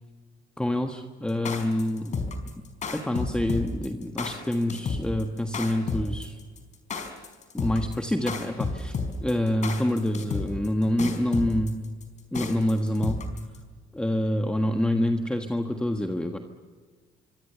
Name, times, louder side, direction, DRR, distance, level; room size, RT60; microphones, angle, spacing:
voice 1, 0.6-2.1 2.9-6.4 7.5-9.0 9.2-11.9 12.3-13.2 13.9-16.4, left 1 dB, 5° left, 5 dB, 1.5 m, -26 dB
sound 1, 1.3-13.6, left 4 dB, 45° left, 4.8 m, -31 dB
25.5 x 24.5 x 7.0 m, 1.5 s
cardioid pair, 110°, 17 cm